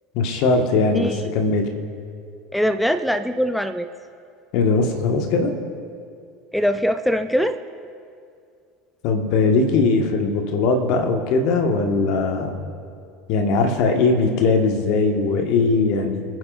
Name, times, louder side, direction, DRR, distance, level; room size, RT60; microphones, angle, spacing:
voice 1, 0.1-1.7 4.5-5.5 9.0-12.6 13.3-16.2, left 3 dB, 55° left, 3 dB, 1.6 m, -20 dB
voice 2, 2.5-3.9 6.5-7.6, equal, ahead, 11 dB, 0.6 m, -22 dB
26.0 x 9.5 x 2.6 m, 2.3 s
figure-of-eight pair, 70°, 0 cm